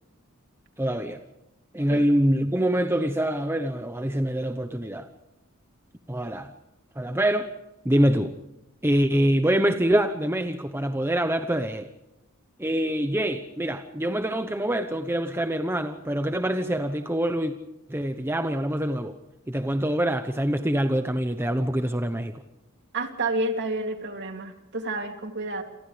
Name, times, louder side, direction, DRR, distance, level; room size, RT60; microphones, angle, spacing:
voice 1, 0.8-1.2 1.7-5.1 6.1-6.5 7.0-7.5 7.8-8.3 8.8-11.9 12.6-17.5 17.9-19.2 19.5-22.4, right 1 dB, 10° right, 7 dB, 1.0 m, -25 dB
voice 2, 22.9-25.6, right 2 dB, 50° right, 4 dB, 3.0 m, -30 dB
28.0 x 28.0 x 3.4 m, 0.92 s
head